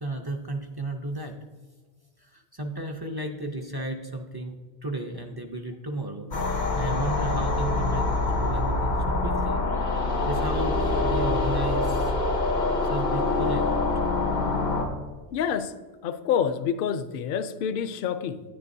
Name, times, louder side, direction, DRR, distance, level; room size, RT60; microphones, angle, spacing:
voice 1, 0.0-1.4 2.2-9.6 10.2-12.1 12.8-13.7, right 1 dB, 30° right, 4 dB, 0.5 m, -34 dB
sound 1, 6.3-14.8, left 2 dB, 90° left, 1.9 m, -25 dB
voice 2, 15.3-15.7 16.0-18.4, left 8 dB, 65° left, 10 dB, 0.7 m, -27 dB
9.7 x 9.7 x 2.6 m, 1.4 s
omnidirectional pair, 1.1 m